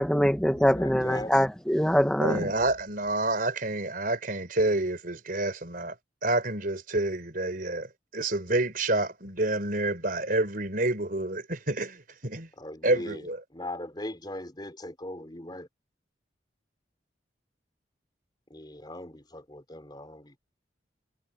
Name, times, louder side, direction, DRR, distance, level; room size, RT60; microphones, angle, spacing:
voice 1, 0.0-2.4, equal, 5° left, 1.1 m, -23 dB
voice 2, 0.5-1.4 12.6-13.2 13.5-15.7 18.5-20.4, left 1 dB, 25° left, 4.4 m, -39 dB
voice 3, 2.2-5.9 6.2-12.5 12.8-13.4, right 2 dB, 50° right, 4.9 m, -28 dB
head